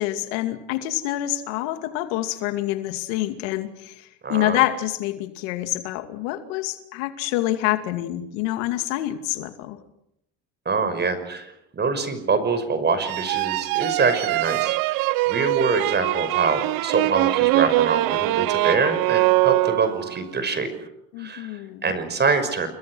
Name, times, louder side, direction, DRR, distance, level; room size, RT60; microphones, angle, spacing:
voice 1, 0.0-9.8 21.1-21.9, left 15 dB, 85° left, 8 dB, 2.5 m, -27 dB
voice 2, 4.2-4.6 10.7-15.0 15.3-20.7 21.2-21.5 21.8-22.7, right 4 dB, 30° right, 10 dB, 5.6 m, -25 dB
sound 1, 13.1-20.2, right 19 dB, 65° right, 0.9 m, -22 dB
30.0 x 22.5 x 6.3 m, 0.77 s
supercardioid pair, 110°, 36 cm